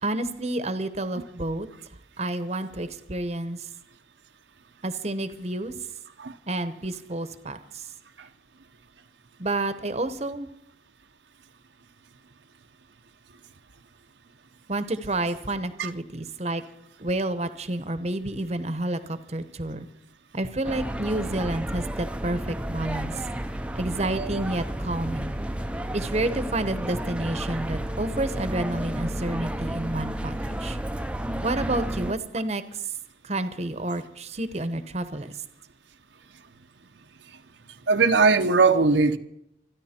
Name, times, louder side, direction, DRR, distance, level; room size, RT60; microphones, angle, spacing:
voice 1, 0.0-1.7 2.2-3.7 4.8-5.7 6.5-7.8 9.4-10.5 14.7-16.6 17.0-19.9 20.3-23.1 23.7-25.3 25.9-30.8 31.4-32.6 33.2-35.3, right 2 dB, 35° right, 0.9 m, -29 dB
sound 1, 20.6-32.1, right 1 dB, 5° right, 0.6 m, -31 dB
voice 2, 37.9-39.2, right 4 dB, 80° right, 0.9 m, -20 dB
26.5 x 10.5 x 4.4 m
head